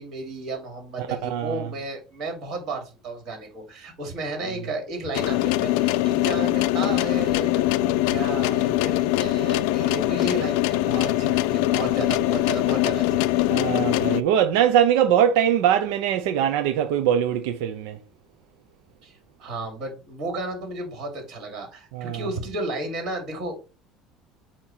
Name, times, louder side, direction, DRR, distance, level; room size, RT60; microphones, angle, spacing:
voice 1, 0.0-13.5 19.0-23.6, right 2 dB, 40° right, 2.8 m, -33 dB
voice 2, 1.2-1.6 13.5-18.0 21.9-22.3, right 9 dB, 80° right, 0.6 m, -22 dB
sound 1, 5.1-14.2, left 15 dB, 80° left, 0.3 m, -22 dB
8.7 x 3.0 x 4.4 m
cardioid pair, 170°, 0 cm